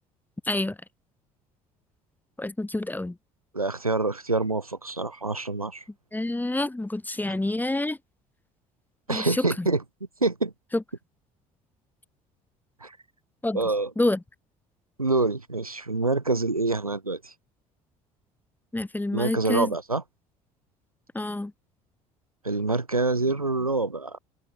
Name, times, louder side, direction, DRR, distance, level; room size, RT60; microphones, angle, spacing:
voice 1, 0.4-0.8 2.4-3.2 6.1-8.0 9.1-9.7 10.7-10.8 13.4-13.6 14.0-14.2 18.7-19.7 21.1-21.5, left 2 dB, 10° left, 3.2 m, -27 dB
voice 2, 3.5-5.8 9.1-9.8 10.2-10.5 12.8-13.0 13.5-13.9 15.0-17.3 19.1-20.0 22.4-24.2, right 3 dB, 90° right, 2.1 m, -26 dB
figure-of-eight pair, 55°, 18 cm